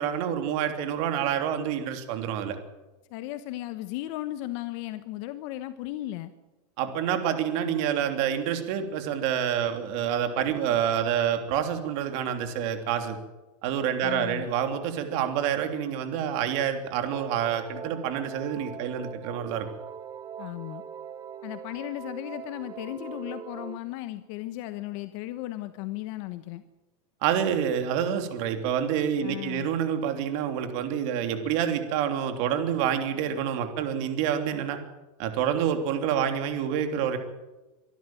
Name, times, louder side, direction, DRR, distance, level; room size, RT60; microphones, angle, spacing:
voice 1, 0.0-2.6 6.8-13.2 13.6-19.7 27.2-34.8 35.2-37.2, right 9 dB, 55° right, 7 dB, 3.2 m, -27 dB
voice 2, 3.1-6.3 14.0-14.5 20.4-20.8 21.4-26.6 29.2-29.7, left 15 dB, 55° left, 11 dB, 1.2 m, -36 dB
sound 1, 17.1-23.8, right 8 dB, 20° right, 1.1 m, -41 dB
24.5 x 12.5 x 9.2 m, 1.1 s
supercardioid pair, 130°, 19 cm